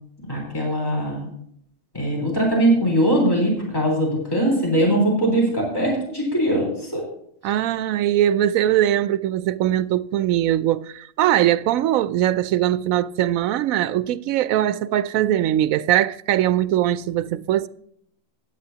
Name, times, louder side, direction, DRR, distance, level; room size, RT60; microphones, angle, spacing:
voice 1, 0.3-1.3 1.9-7.0, right 1 dB, 15° left, 3.9 m, -21 dB
voice 2, 7.4-17.7, right 12 dB, 85° right, 1.0 m, -21 dB
16.0 x 10.0 x 2.8 m
omnidirectional pair, 1.4 m